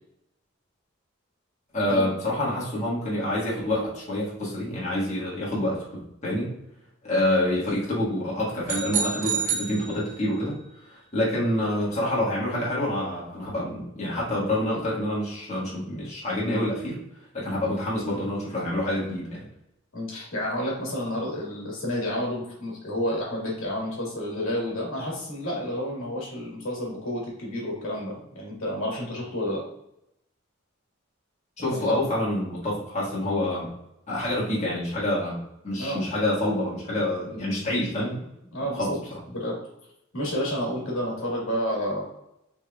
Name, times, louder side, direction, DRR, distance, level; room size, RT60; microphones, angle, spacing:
voice 1, 1.7-5.8 6.2-6.5 7.0-10.6 10.8-17.0 17.3-19.4 31.6-33.7 34.1-38.2 38.7-39.2 41.2-41.3, left 1 dB, 35° left, -7 dB, 1.6 m, -27 dB
sound 1, 8.7-10.5, right 6 dB, 40° right, 0.6 m, -29 dB
voice 2, 19.9-29.6 31.6-32.0 35.7-36.0 38.5-39.0 39.3-39.6 40.1-42.0, equal, 75° left, -4 dB, 1.6 m, -30 dB
6.1 x 3.3 x 2.3 m, 0.82 s
head